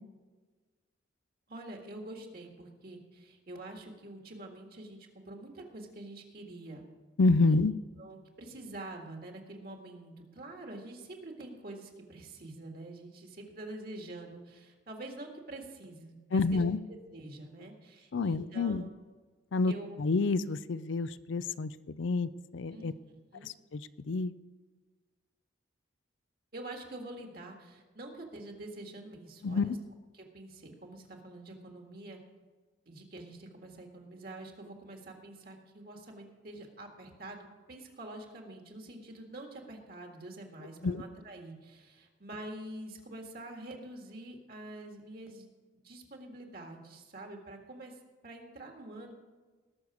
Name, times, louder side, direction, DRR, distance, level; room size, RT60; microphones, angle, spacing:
voice 1, 1.5-6.8 7.5-7.6 8.0-18.9 19.7-20.0 22.7-23.5 26.5-29.8 30.1-32.2 32.9-45.5 45.7-48.0 48.2-49.1, right 2 dB, 50° right, 2 dB, 1.8 m, -46 dB
voice 2, 7.2-7.7 16.3-16.8 18.1-18.9 19.5-19.7 20.0-22.9 23.4-24.3 29.4-29.7 40.8-41.0, left 3 dB, 75° left, 16 dB, 0.5 m, -28 dB
19.5 x 6.6 x 4.9 m, 1.4 s
head